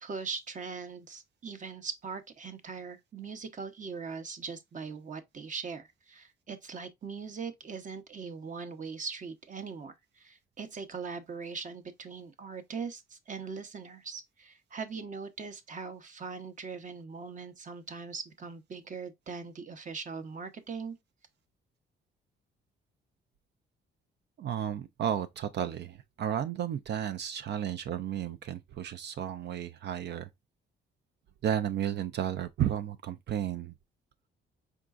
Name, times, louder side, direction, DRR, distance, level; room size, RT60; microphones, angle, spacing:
voice 1, 0.0-20.9, right 5 dB, 40° right, 0.8 m, -41 dB
voice 2, 24.4-30.3 31.4-33.7, right 10 dB, 60° right, 0.5 m, -33 dB
4.6 x 3.7 x 2.4 m
cardioid pair, 90°, 20 cm